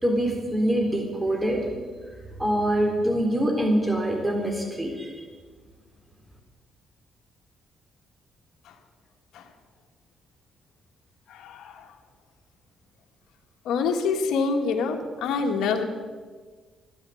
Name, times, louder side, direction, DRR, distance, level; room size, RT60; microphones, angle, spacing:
voice 1, 0.0-1.7 2.4-5.2, right 1 dB, 15° right, 2 dB, 3.9 m, -24 dB
voice 2, 11.3-11.9 13.6-15.8, left 5 dB, 80° left, 3 dB, 1.6 m, -26 dB
13.5 x 10.5 x 7.8 m, 1.5 s
cardioid pair, 90°, 0 cm